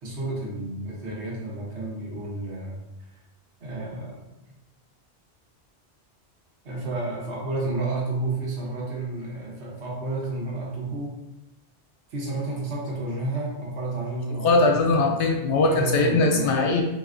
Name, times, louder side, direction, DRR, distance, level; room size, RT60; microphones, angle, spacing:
voice 1, 0.0-2.8 3.6-4.2 6.6-11.2 12.1-14.7 15.7-16.5, right 2 dB, 75° right, -3 dB, 1.1 m, -31 dB
voice 2, 14.4-16.8, left 3 dB, 85° left, 2 dB, 0.9 m, -20 dB
3.2 x 2.7 x 2.5 m, 0.93 s
omnidirectional pair, 1.2 m